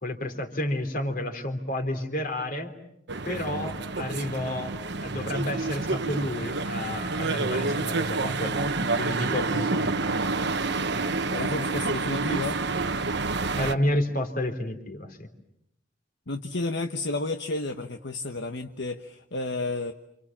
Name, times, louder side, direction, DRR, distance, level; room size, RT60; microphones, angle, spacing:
voice 1, 0.0-2.7 3.3-4.7 5.0-9.9 13.5-15.3, left 1 dB, 45° left, 6 dB, 3.7 m, -30 dB
sound 1, 3.1-13.8, right 3 dB, 60° right, 1.3 m, -28 dB
voice 2, 11.3-12.6 16.3-19.9, left 2 dB, 60° left, 6 dB, 1.3 m, -31 dB
29.0 x 28.0 x 7.4 m, 0.77 s
head